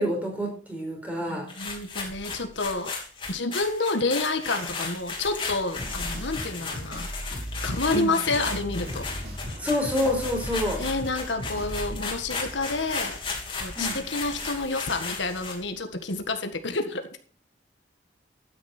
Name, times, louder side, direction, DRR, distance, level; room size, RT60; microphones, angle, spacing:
voice 1, 0.0-1.5 7.9-8.1 9.6-10.8 13.8-14.0, equal, 10° right, 1 dB, 4.4 m, -27 dB
voice 2, 1.3-2.9 3.3-7.1 7.6-9.1 10.8-13.2 13.6-17.2, left 3 dB, 85° left, 6 dB, 1.7 m, -29 dB
sound 1, 1.5-15.7, left 4 dB, 25° left, 3.2 m, -35 dB
sound 2, 5.8-12.0, equal, 50° right, 4.3 m, -36 dB
12.5 x 10.0 x 4.4 m, 0.43 s
head